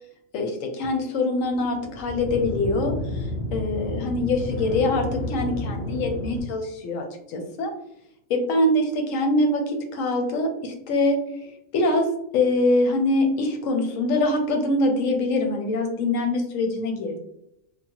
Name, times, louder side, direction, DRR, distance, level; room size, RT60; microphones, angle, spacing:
voice 1, 0.3-7.7 8.3-11.2 11.7-12.1 12.3-17.2, left 2 dB, 90° left, 4 dB, 1.0 m, -24 dB
sound 1, 1.4-6.4, left 1 dB, 40° left, 0.9 m, -31 dB
3.0 x 2.1 x 2.8 m, 0.77 s
omnidirectional pair, 1.3 m